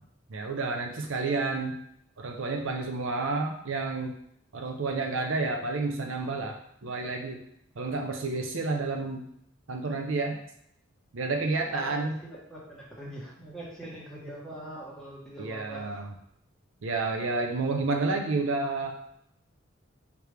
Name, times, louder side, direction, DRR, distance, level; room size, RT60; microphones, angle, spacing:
voice 1, 0.3-1.8 2.2-4.1 4.5-6.6 6.8-7.4 7.8-9.2 9.7-10.4 11.1-12.2 15.4-16.1 16.8-18.9, right 3 dB, 70° right, 3 dB, 0.6 m, -30 dB
voice 2, 11.6-15.9, right 1 dB, 5° left, -7 dB, 1.3 m, -43 dB
4.8 x 3.4 x 3.3 m, 0.71 s
head